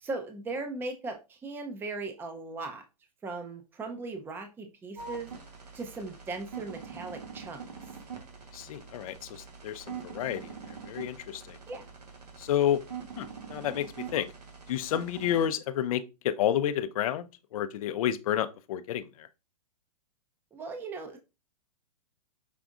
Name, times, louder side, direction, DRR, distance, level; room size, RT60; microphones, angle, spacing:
voice 1, 0.0-2.8 3.2-5.3 5.7-7.6 11.7-11.9 20.5-21.2, right 3 dB, 10° right, 0.5 m, -38 dB
sound 1, 5.0-15.5, right 6 dB, 90° right, 1.3 m, -44 dB
voice 2, 8.5-11.6 12.4-12.8 13.2-14.3 14.7-19.3, left 10 dB, 60° left, 0.5 m, -30 dB
5.2 x 3.4 x 2.4 m
hypercardioid pair, 125°, 20 cm